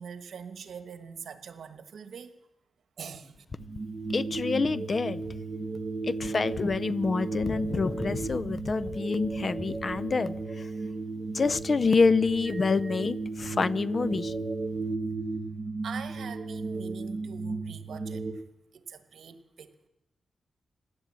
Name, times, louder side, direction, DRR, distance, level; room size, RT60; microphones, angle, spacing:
voice 1, 0.0-2.4 3.0-3.4 14.6-15.2 15.5-15.6 15.8-18.4 18.7-19.7, right 6 dB, 80° right, 9 dB, 1.3 m, -44 dB
sound 1, 3.5-18.3, right 3 dB, 20° right, 2.5 m, -34 dB
voice 2, 4.1-5.2 6.1-10.7 11.3-14.3, left 4 dB, 45° left, 17 dB, 0.5 m, -27 dB
17.0 x 10.5 x 7.5 m, 0.92 s
cardioid pair, 95°, 0 cm